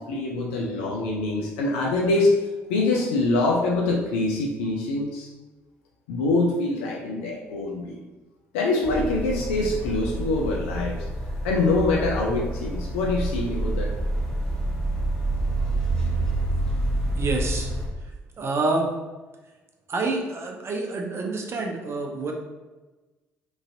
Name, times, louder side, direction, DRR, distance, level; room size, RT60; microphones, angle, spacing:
voice 1, 0.0-2.3 2.7-5.3 6.1-8.0 8.5-11.0 11.4-13.9, left 2 dB, 80° left, -2 dB, 0.4 m, -24 dB
sound 1, 8.8-17.9, right 1 dB, 10° left, 1.1 m, -28 dB
voice 2, 17.2-17.7 18.4-18.9 19.9-22.3, right 3 dB, 40° right, 2 dB, 0.6 m, -27 dB
3.0 x 2.6 x 2.6 m, 1.2 s
hypercardioid pair, 50°, 6 cm